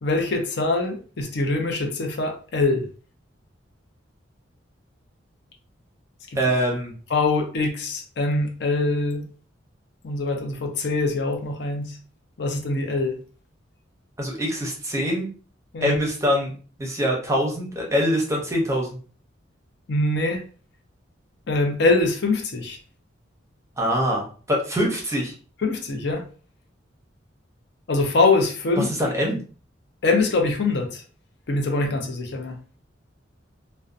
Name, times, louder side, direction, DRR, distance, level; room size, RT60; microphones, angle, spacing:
voice 1, 0.0-2.9 6.3-6.4 7.1-9.2 10.0-12.0 12.4-13.2 15.7-16.0 19.9-20.4 21.5-22.8 25.6-26.2 27.9-28.9 30.0-31.0 31.5-32.6, left 3 dB, 60° left, 3 dB, 0.5 m, -23 dB
voice 2, 6.3-6.9 14.2-15.3 15.8-16.5 16.8-18.9 23.8-25.3 28.8-29.4, equal, 15° right, -1 dB, 0.6 m, -24 dB
2.5 x 2.1 x 2.5 m, 0.40 s
head